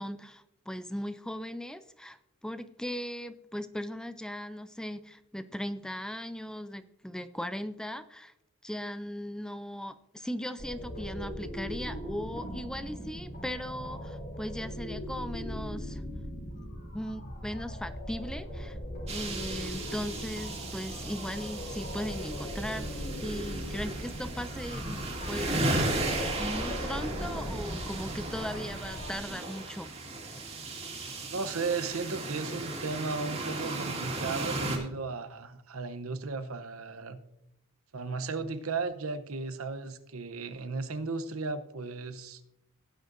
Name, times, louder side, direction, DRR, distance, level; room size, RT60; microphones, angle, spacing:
voice 1, 0.0-2.2 2.4-8.3 8.6-16.0 16.5-16.7 16.9-18.8 19.1-26.1 26.4-29.9, equal, 5° left, 12 dB, 0.3 m, -38 dB
sound 1, 10.6-29.1, equal, 50° left, 3.2 m, -39 dB
sound 2, 19.1-34.8, right 2 dB, 30° right, 2.3 m, -36 dB
voice 2, 31.3-37.2 37.9-42.4, right 4 dB, 75° right, 11 dB, 0.8 m, -35 dB
17.0 x 9.2 x 2.6 m, 0.84 s
head